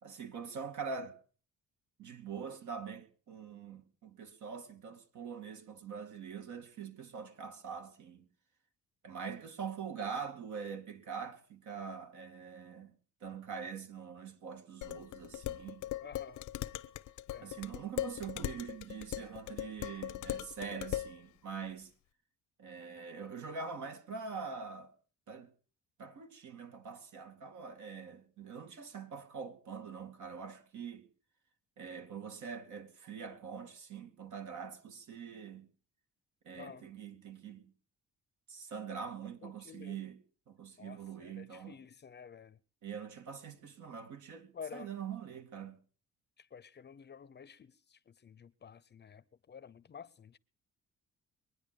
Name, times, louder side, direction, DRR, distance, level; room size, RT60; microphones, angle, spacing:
voice 1, 0.0-1.2 2.0-8.2 9.0-12.9 13.2-15.8 17.4-21.9 22.6-24.9 25.3-25.5 26.0-31.1 31.8-35.7 36.4-37.7 38.5-40.2 40.5-41.8 42.8-45.8, right 6 dB, 75° right, 2.5 m, -44 dB
Dishes pots and pans, 14.8-21.1, left 13 dB, 85° left, 0.8 m, -39 dB
voice 2, 16.0-16.5 17.3-17.5 36.6-36.9 39.4-40.0 40.8-42.6 44.5-44.9 46.4-50.4, left 7 dB, 35° left, 0.6 m, -51 dB
23.0 x 9.7 x 5.2 m
cardioid pair, 90°, 30 cm